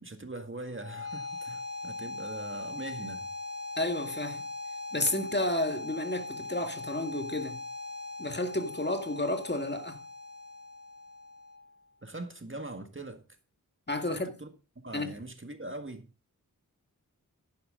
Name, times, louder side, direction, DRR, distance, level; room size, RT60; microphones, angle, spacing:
voice 1, 0.0-3.3 12.0-13.2 14.0-14.5 14.8-16.1, right 2 dB, 35° right, 1.8 m, -41 dB
sound 1, 0.8-11.8, left 3 dB, 65° left, 4.9 m, -40 dB
voice 2, 3.8-4.4 4.9-7.6 8.2-10.0 13.9-14.3 14.9-15.1, left 1 dB, 30° left, 1.9 m, -31 dB
11.0 x 9.5 x 3.8 m
wide cardioid pair, 50°, 34 cm